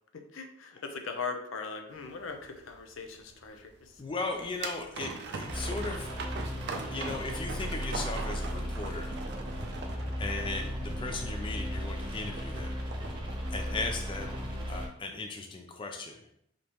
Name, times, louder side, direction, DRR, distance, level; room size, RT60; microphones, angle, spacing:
voice 1, 0.1-4.0 10.2-10.6, left 4 dB, 75° left, 5 dB, 0.6 m, -40 dB
sound 1, 1.9-14.9, right 4 dB, 55° right, 0.5 m, -42 dB
voice 2, 4.0-6.1 6.9-9.1 10.2-13.1 13.5-14.4 14.7-16.2, left 3 dB, 25° left, 3 dB, 0.4 m, -37 dB
sound 2, 5.5-14.9, equal, 25° right, 0.9 m, -36 dB
sound 3, 9.6-9.7 9.9-10.0 10.2-10.4 10.9-11.1 11.5-11.8 12.2-12.3 12.5-12.6 12.8-13.1 13.5-13.8 14.2-14.4, left 1 dB, 40° left, 1.4 m, -46 dB
5.1 x 2.9 x 3.0 m, 0.73 s
head